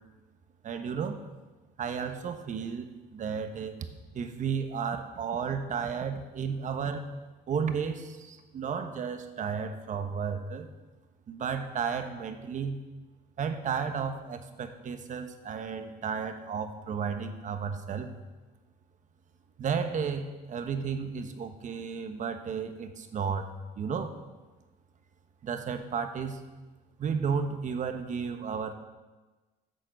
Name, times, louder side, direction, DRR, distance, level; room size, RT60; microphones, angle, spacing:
voice 1, 0.6-1.2 1.8-3.7 4.1-7.1 7.5-10.7 11.3-12.8 13.4-18.1 19.6-24.2 25.4-26.4 27.0-28.7, right 6 dB, 50° right, 8 dB, 1.2 m, -33 dB
11.0 x 6.7 x 7.8 m, 1.2 s
cardioid pair, 110°, 17 cm